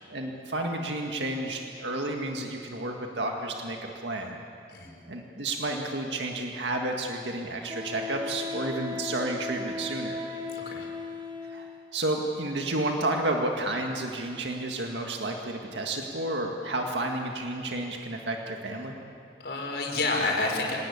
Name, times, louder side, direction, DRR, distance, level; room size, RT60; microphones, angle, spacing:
voice 1, 0.1-4.4 5.1-10.2 11.5-11.7 11.9-19.0, right 2 dB, 90° right, 2 dB, 1.9 m, -31 dB
Wind instrument woodwind instrument, 7.7-11.8, left 3 dB, 25° right, 1.9 m, -36 dB
voice 2, 10.5-10.9 19.4-20.8, left 3 dB, 70° left, 0 dB, 5.2 m, -29 dB
26.5 x 19.0 x 8.7 m, 2.5 s
head